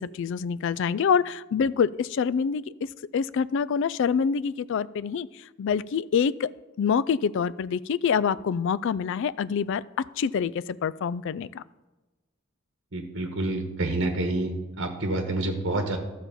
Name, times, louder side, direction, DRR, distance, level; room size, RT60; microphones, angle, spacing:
voice 1, 0.0-2.6 3.1-5.3 5.6-6.5 6.8-10.5 10.8-11.6, left 6 dB, 60° left, 18 dB, 0.3 m, -26 dB
voice 2, 12.9-14.5 14.8-16.0, right 2 dB, 60° right, 4 dB, 1.2 m, -28 dB
12.5 x 4.2 x 7.0 m, 1.2 s
head